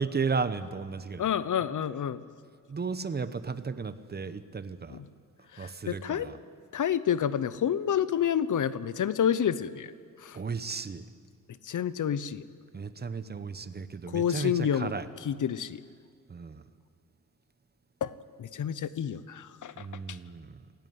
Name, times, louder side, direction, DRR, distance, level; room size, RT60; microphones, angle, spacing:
voice 1, 0.0-1.3 2.7-5.0 5.6-6.4 10.3-11.0 12.7-15.1 16.3-16.6 19.8-20.6, right 5 dB, 30° right, 13 dB, 0.8 m, -34 dB
voice 2, 1.2-2.2 4.9-5.0 5.5-6.3 6.7-9.9 10.2-10.4 11.7-12.4 14.1-14.9 15.3-15.8 18.0-18.1 18.4-19.9, left 9 dB, 60° left, 16 dB, 0.8 m, -29 dB
27.0 x 16.5 x 9.4 m, 2.2 s
wide cardioid pair, 175°, 34 cm